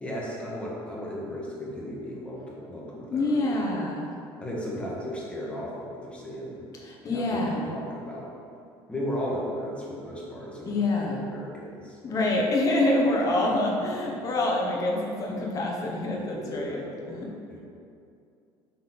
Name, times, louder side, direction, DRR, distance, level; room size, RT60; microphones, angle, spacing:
voice 1, 0.0-3.8 4.4-6.6 7.1-8.3 8.9-12.3 15.8-17.6, equal, 10° left, -5 dB, 1.2 m, -36 dB
voice 2, 3.1-4.1 6.9-7.7 10.7-11.2 12.0-17.3, left 2 dB, 35° left, -1 dB, 1.0 m, -26 dB
5.7 x 3.6 x 5.9 m, 2.5 s
cardioid pair, 140°, 10 cm